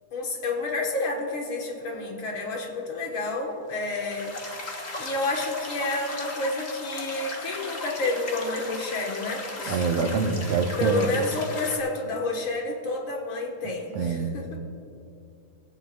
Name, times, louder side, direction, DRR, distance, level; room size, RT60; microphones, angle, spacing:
voice 1, 0.1-4.6 5.0-10.0 10.8-14.6, left 2 dB, 50° left, 0 dB, 2.3 m, -30 dB
sound 1, 3.7-11.8, left 2 dB, 30° left, 1.2 m, -37 dB
voice 2, 9.7-11.1 13.9-14.4, right 5 dB, 65° right, 4 dB, 2.0 m, -25 dB
26.0 x 15.0 x 2.6 m, 2.6 s
omnidirectional pair, 3.3 m